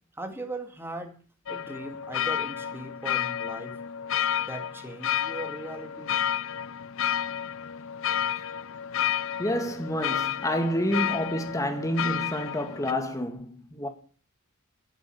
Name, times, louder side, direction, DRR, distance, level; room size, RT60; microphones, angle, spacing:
voice 1, 0.1-1.2 1.5-3.8 4.4-6.1, right 1 dB, 10° right, 2.3 m, -39 dB
sound 1, 1.5-12.9, left 9 dB, 65° left, 0.6 m, -31 dB
voice 2, 9.4-13.9, equal, 15° left, 1.7 m, -29 dB
11.0 x 10.0 x 8.1 m
head